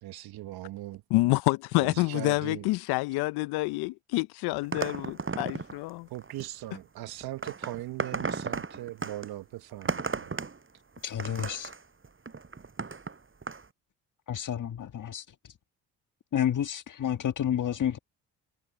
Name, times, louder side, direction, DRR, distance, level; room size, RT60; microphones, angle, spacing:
voice 1, 0.0-1.0 1.8-2.7 6.1-10.4, right 15 dB, 65° right, 1.2 m, -39 dB
voice 2, 1.1-6.1, left 22 dB, 75° left, 0.7 m, -28 dB
sound 1, 4.6-5.8 6.1-6.5 7.1-9.3 9.7-10.6 11.0-13.2 13.4-13.6, right 4 dB, 30° right, 6.6 m, -35 dB
voice 3, 11.0-11.7 14.3-15.5 16.3-18.0, left 9 dB, 50° left, 1.7 m, -30 dB
hypercardioid pair, 55°, 39 cm